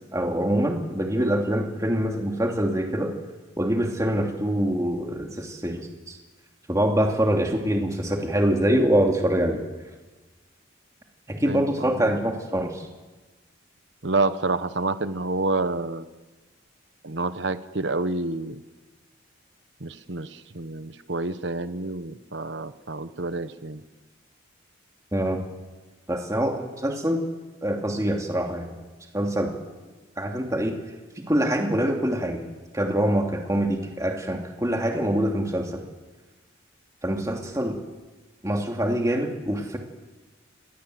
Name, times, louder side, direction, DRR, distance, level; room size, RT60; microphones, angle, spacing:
voice 1, 0.1-3.1 3.6-6.2 6.7-9.6 11.3-12.9 25.1-25.4 26.1-27.2 27.6-28.7 29.1-29.5 30.2-30.7 31.2-32.4 32.7-35.8 37.0-37.8 38.4-39.8, right 1 dB, 15° right, 2 dB, 2.7 m, -24 dB
voice 2, 11.4-12.1 14.0-16.0 17.0-18.6 19.8-23.8, right 2 dB, 60° right, 12 dB, 1.2 m, -28 dB
28.5 x 19.5 x 7.9 m, 1.3 s
head